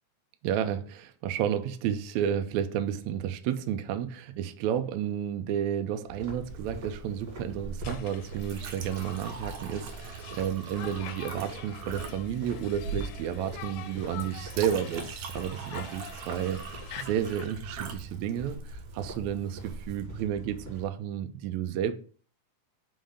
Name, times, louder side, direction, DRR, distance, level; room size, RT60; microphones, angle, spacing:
voice 1, 0.4-16.6 17.0-21.9, right 9 dB, 85° right, 1.6 m, -31 dB
sound 1, 6.1-20.8, right 2 dB, 40° right, 2.4 m, -44 dB
Chink clink, 6.4-20.0, right 5 dB, 70° right, 1.9 m, -42 dB
Conversation, 7.8-17.5, left 10 dB, 80° left, 2.2 m, -46 dB
5.2 x 3.9 x 4.9 m
omnidirectional pair, 3.8 m